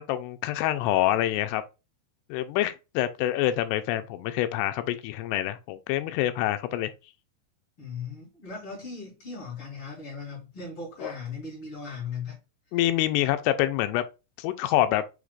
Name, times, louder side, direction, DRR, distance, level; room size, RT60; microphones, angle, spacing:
voice 1, 0.0-1.6 2.3-6.9 11.0-11.1 12.7-14.0 14.4-15.0, left 13 dB, 90° left, 2.7 m, -26 dB
voice 2, 7.8-12.4, left 5 dB, 40° left, 2.6 m, -38 dB
6.5 x 3.3 x 2.4 m
omnidirectional pair, 4.7 m